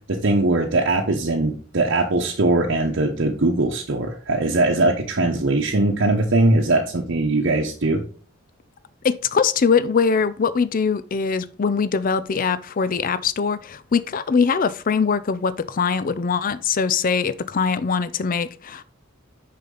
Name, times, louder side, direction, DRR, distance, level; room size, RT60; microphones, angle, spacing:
voice 1, 0.1-8.0, right 2 dB, 60° right, 1.0 m, -20 dB
voice 2, 9.0-18.8, left 5 dB, 40° left, 0.5 m, -22 dB
6.4 x 5.8 x 3.9 m
head